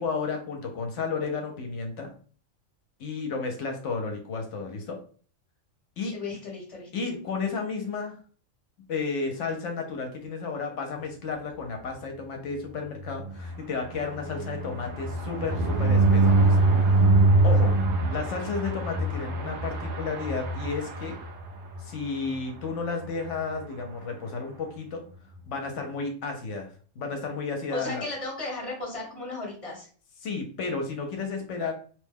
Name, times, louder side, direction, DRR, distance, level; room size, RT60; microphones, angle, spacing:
voice 1, 0.0-2.1 3.0-5.0 6.0-6.1 6.9-8.2 8.9-17.1 17.4-17.7 18.1-21.2 21.8-25.0 25.5-26.7 27.0-28.1 30.2-31.7, left 4 dB, 70° left, 4 dB, 0.9 m, -32 dB
voice 2, 6.1-6.9 27.7-29.9, left 2 dB, 30° left, -2 dB, 1.1 m, -35 dB
sound 1, 13.0-21.8 22.2-22.4 22.7-22.8 23.0-23.3, right 2 dB, 65° right, 0.9 m, -24 dB
2.9 x 2.1 x 3.3 m, 0.43 s
omnidirectional pair, 1.3 m